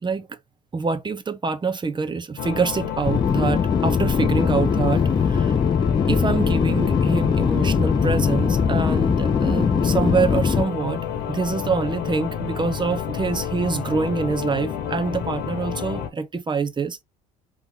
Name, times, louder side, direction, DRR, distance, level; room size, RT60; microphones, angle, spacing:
voice 1, 0.0-0.4 0.7-5.6 6.1-11.0 11.3-17.0, right 5 dB, 25° right, 0.8 m, -25 dB
sound 1, 2.4-16.1, left 8 dB, 60° left, 1.2 m, -29 dB
sound 2, 3.1-10.6, left 6 dB, 25° left, 0.4 m, -21 dB
3.9 x 3.1 x 2.9 m
hypercardioid pair, 65°, 19 cm